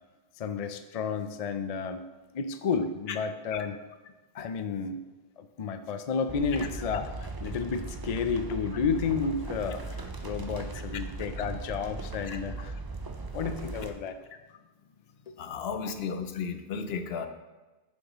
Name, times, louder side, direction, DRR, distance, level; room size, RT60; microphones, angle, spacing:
voice 1, 0.4-2.1 2.3-3.8 4.3-5.0 5.4-12.8 13.3-14.2 15.3-15.4, left 5 dB, 50° left, 9 dB, 0.4 m, -31 dB
sound 1, 6.3-13.9, right 3 dB, 30° right, 0.4 m, -38 dB
voice 2, 15.4-17.3, left 6 dB, 70° left, 8 dB, 0.9 m, -34 dB
9.2 x 7.1 x 3.0 m, 1.1 s
omnidirectional pair, 1.1 m